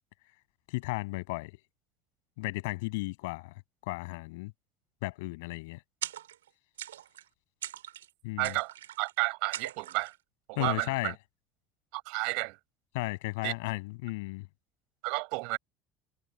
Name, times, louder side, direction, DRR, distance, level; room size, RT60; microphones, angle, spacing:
voice 1, 0.7-1.5 2.4-3.5 3.9-4.5 5.0-5.8 8.2-8.5 10.6-11.1 12.9-14.5, left 23 dB, 75° left, 6.7 m, -34 dB
sound 1, 6.0-6.5 6.8-7.3 7.6-8.1 8.4-9.1 9.5-10.2, right 12 dB, 90° right, 3.3 m, -41 dB
voice 2, 8.4-10.1 10.5-11.1 11.9-12.6 13.4-13.5 15.0-15.6, right 33 dB, 70° right, 6.3 m, -32 dB
hypercardioid pair, 75°, 0 cm